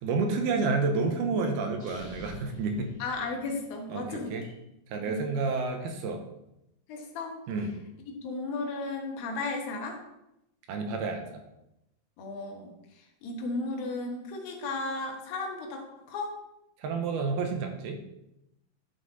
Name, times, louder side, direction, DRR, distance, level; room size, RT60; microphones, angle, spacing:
voice 1, 0.0-2.9 3.9-4.4 4.9-6.2 7.5-7.7 10.7-11.4 16.8-18.0, right 4 dB, 80° right, 4 dB, 2.9 m, -30 dB
sound 1, 1.7-3.8, right 1 dB, 45° left, 3.7 m, -47 dB
voice 2, 3.0-4.4 5.0-5.3 6.9-7.4 8.1-10.0 12.2-16.4, left 3 dB, 70° left, 2 dB, 3.0 m, -35 dB
11.5 x 5.8 x 4.0 m, 0.87 s
omnidirectional pair, 4.5 m